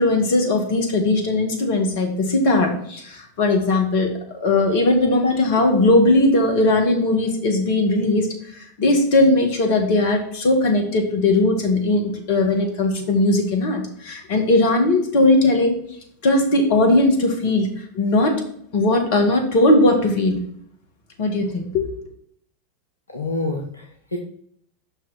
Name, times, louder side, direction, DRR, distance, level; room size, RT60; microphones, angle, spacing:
voice 1, 0.0-8.3 8.6-15.8 16.2-18.4 18.7-20.4 21.2-21.9, left 2 dB, 55° left, 4 dB, 1.5 m, -19 dB
voice 2, 23.1-24.2, left 2 dB, 80° left, 1 dB, 0.9 m, -27 dB
6.1 x 5.7 x 4.1 m, 0.66 s
figure-of-eight pair, 85°, 0 cm